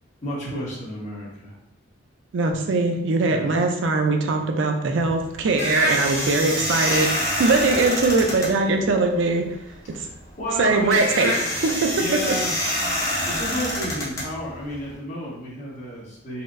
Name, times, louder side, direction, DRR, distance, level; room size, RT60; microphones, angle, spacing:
voice 1, 0.2-1.5 3.3-3.5 9.9-11.2 11.6-11.7 12.0-12.6 13.1-16.4, equal, 40° left, -6 dB, 1.1 m, -31 dB
voice 2, 2.3-7.1 7.4-9.4 9.9-10.1 10.6-12.2, right 3 dB, 70° right, 4 dB, 0.4 m, -21 dB
sound 1, 5.0-14.9, left 1 dB, 15° left, 0.7 m, -27 dB
4.2 x 2.0 x 2.5 m, 0.87 s
head